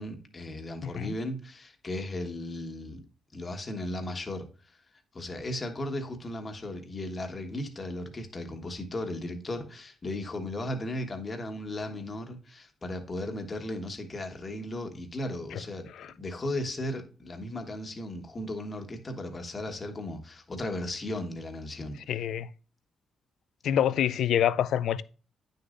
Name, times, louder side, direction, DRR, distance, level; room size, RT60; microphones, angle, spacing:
voice 1, 0.0-3.0 3.3-4.8 5.1-15.9 16.2-22.2, left 1 dB, 35° left, 1.4 m, -36 dB
voice 2, 0.8-1.1 16.0-16.1 22.1-22.5 23.6-25.0, left 10 dB, 80° left, 0.4 m, -26 dB
9.2 x 6.5 x 2.5 m
cardioid pair, 85°, 0 cm